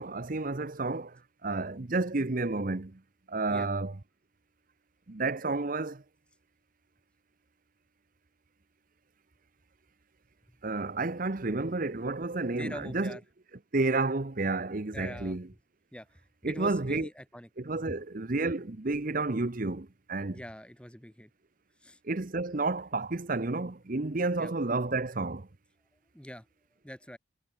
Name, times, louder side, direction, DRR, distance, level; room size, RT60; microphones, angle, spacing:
voice 1, 0.0-3.0 3.3-4.0 5.1-6.0 10.6-13.2 13.7-15.5 16.4-17.1 17.6-20.4 22.0-25.5, right 3 dB, 45° right, 0.9 m, -31 dB
voice 2, 12.6-13.2 14.9-15.4 15.9-17.5 17.8-18.0 20.3-21.3 21.8-22.0 24.4-24.5 26.1-26.5 26.8-27.2, equal, 5° left, 3.5 m, -43 dB
head